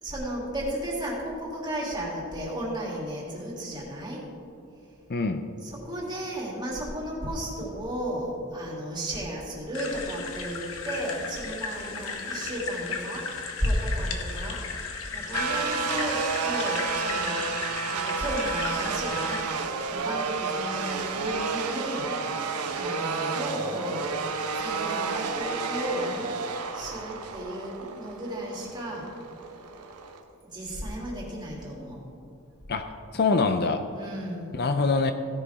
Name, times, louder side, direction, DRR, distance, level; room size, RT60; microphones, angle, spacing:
voice 1, 0.0-4.2 5.6-14.8 15.1-17.3 17.8-26.3 26.7-29.1 30.5-32.0 33.9-34.5, equal, 20° right, -4 dB, 2.9 m, -34 dB
voice 2, 5.1-5.4 32.7-33.8 34.5-35.1, left 4 dB, 45° left, 8 dB, 0.6 m, -24 dB
sound 1, 9.7-19.4, left 5 dB, 65° left, 1.4 m, -35 dB
sound 2, 15.3-30.2, right 4 dB, 90° right, 1.1 m, -31 dB
17.0 x 11.0 x 3.6 m, 2.8 s
head